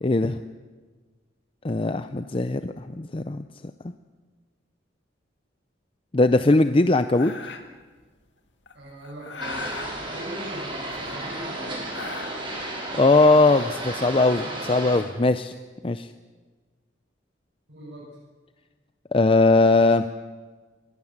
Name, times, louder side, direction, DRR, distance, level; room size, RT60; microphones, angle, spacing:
voice 1, 0.0-0.4 1.6-3.4 6.1-7.3 13.0-15.5 15.8-16.1 19.1-20.0, left 2 dB, 30° left, 10 dB, 0.6 m, -20 dB
sound 1, 7.1-7.8 8.7-9.9 10.8-11.4 11.7-12.6 13.1-14.3, left 4 dB, 65° left, 2.2 m, -38 dB
voice 2, 8.7-11.8 17.7-18.1, equal, 65° right, -5 dB, 7.1 m, -40 dB
sound 2, 9.4-15.0, right 1 dB, 25° right, 5.9 m, -33 dB
25.0 x 19.0 x 7.4 m, 1.4 s
head